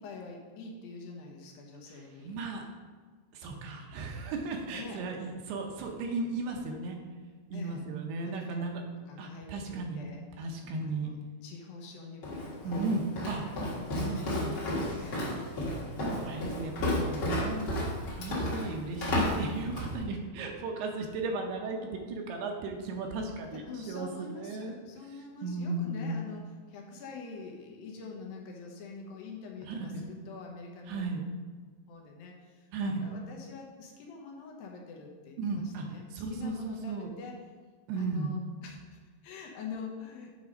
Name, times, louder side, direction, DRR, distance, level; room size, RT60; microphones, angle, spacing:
voice 1, 0.0-2.4 4.7-5.1 7.5-7.8 8.2-8.6 9.1-10.2 10.8-13.3 15.0-15.5 23.5-31.1 31.9-37.4 38.0-40.4, left 4 dB, 70° left, 0 dB, 2.4 m, -45 dB
voice 2, 1.9-2.7 3.3-7.0 7.5-8.8 9.2-10.0 10.4-11.1 12.6-13.4 13.9-14.5 15.1-15.4 16.0-24.8 25.1-26.3 29.6-30.1 30.9-31.2 32.7-33.0 35.4-35.8 36.1-37.1 37.9-38.4, right 3 dB, 80° right, 2 dB, 2.7 m, -35 dB
Walk footsteps, 12.2-20.0, left 1 dB, 45° left, 1.8 m, -32 dB
8.4 x 4.7 x 5.2 m, 1.5 s
omnidirectional pair, 4.9 m